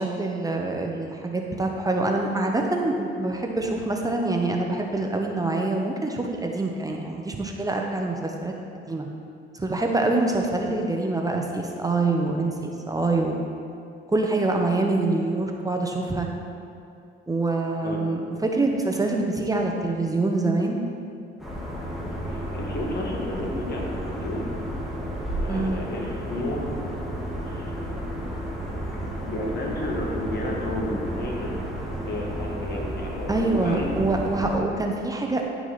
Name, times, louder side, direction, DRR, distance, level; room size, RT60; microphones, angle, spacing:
voice 1, 0.0-8.5 8.9-9.1 9.5-13.4 14.1-16.3 17.3-20.8 25.5-25.8 33.3-35.5, right 2 dB, 20° right, 1 dB, 0.8 m, -25 dB
voice 2, 17.8-18.1 22.3-24.6 25.4-26.7 27.5-27.7 28.9-29.0 29.3-31.6 32.1-33.9, left 1 dB, 55° left, -2 dB, 1.8 m, -32 dB
sound 1, 21.4-34.6, equal, ahead, 1.8 m, -32 dB
10.5 x 6.0 x 4.1 m, 2.5 s
cardioid pair, 90°, 20 cm